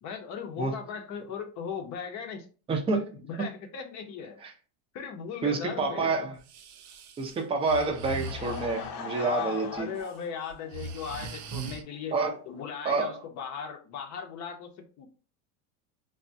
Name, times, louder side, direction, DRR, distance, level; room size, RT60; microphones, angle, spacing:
voice 1, 0.0-2.5 3.1-4.4 4.9-6.2 9.2-12.1 12.4-14.7 15.0-15.1, left 7 dB, 40° left, 0.6 m, -37 dB
voice 2, 2.7-3.1 5.4-6.3 7.2-9.9 12.1-12.4 12.8-13.2, right 3 dB, 15° right, 0.5 m, -28 dB
Breathing, 6.4-8.9 9.8-10.1 10.5-11.8, right 3 dB, 85° right, 0.7 m, -40 dB
Laughter / Crowd, 8.0-11.3 11.6-11.7 12.3-12.4 12.6-12.7, left 5 dB, 90° left, 0.9 m, -42 dB
3.4 x 2.1 x 2.6 m
supercardioid pair, 120°, 44 cm